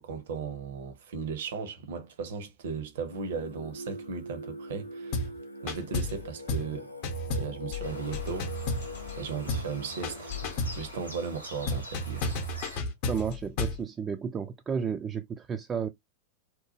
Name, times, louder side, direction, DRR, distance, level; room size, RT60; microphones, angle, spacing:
voice 1, 0.0-5.3 5.6-6.9 7.3-12.3, right 5 dB, 60° right, 0.6 m, -37 dB
Singing, 3.1-11.0, left 1 dB, 85° left, 0.5 m, -43 dB
sound 1, 5.1-5.4 5.7-6.2 6.5-6.7 7.0-9.2 9.5-9.7 10.0-10.8 11.7-13.8, left 2 dB, 45° left, 0.7 m, -32 dB
sound 2, 7.8-12.8, left 1 dB, 85° right, 1.3 m, -45 dB
voice 2, 13.1-15.9, right 6 dB, 20° right, 0.3 m, -32 dB
2.8 x 2.1 x 2.7 m
figure-of-eight pair, 90°, 0 cm